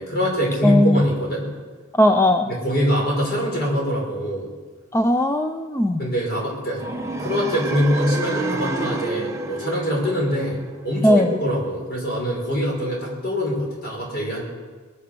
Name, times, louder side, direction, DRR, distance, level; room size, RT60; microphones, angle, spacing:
voice 1, 0.0-1.5 2.5-4.5 6.0-6.8 7.2-14.4, equal, 50° left, -2 dB, 5.4 m, -23 dB
voice 2, 0.6-1.1 2.0-2.5 4.9-6.1 11.0-11.3, left 1 dB, 10° left, 6 dB, 0.5 m, -18 dB
sound 1, 6.7-10.8, right 2 dB, 15° right, 1.1 m, -29 dB
21.0 x 10.0 x 6.8 m, 1.4 s
head